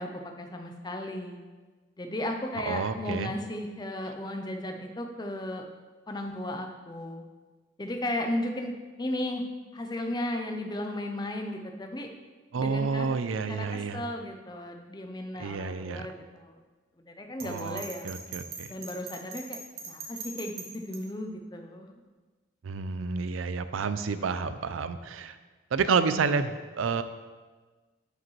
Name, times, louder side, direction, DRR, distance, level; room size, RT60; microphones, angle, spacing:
voice 1, 0.0-1.4 2.0-5.7 6.1-7.2 7.8-8.7 9.0-9.4 9.7-12.1 12.6-13.1 13.5-16.6 17.1-18.1 18.7-19.6 19.9-21.9, left 1 dB, 20° left, 4 dB, 0.6 m, -35 dB
voice 2, 2.6-3.3 12.5-14.0 15.4-16.1 17.4-18.7 22.6-25.4 25.7-27.0, right 5 dB, 90° right, 11 dB, 0.5 m, -29 dB
Bell, 17.4-21.0, right 4 dB, 50° right, 1.2 m, -41 dB
11.0 x 5.0 x 3.2 m, 1.3 s
head